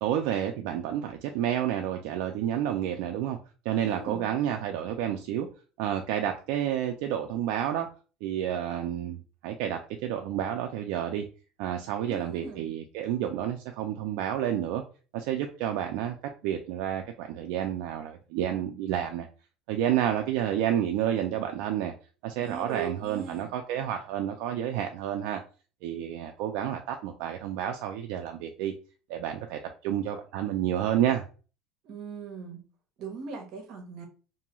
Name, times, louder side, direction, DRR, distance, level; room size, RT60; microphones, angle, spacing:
voice 1, 0.0-3.4 3.7-5.5 5.8-7.9 8.2-11.3 11.6-14.8 15.1-16.2 16.4-19.3 19.7-21.9 22.2-25.4 25.8-28.7 29.1-31.2, right 10 dB, 70° right, 0.3 m, -30 dB
voice 2, 3.8-4.3 12.1-12.7 22.4-23.5 31.8-32.6 33.0-34.1, right 5 dB, 50° right, 0.8 m, -39 dB
2.6 x 2.3 x 3.0 m
cardioid pair, 170°, 0 cm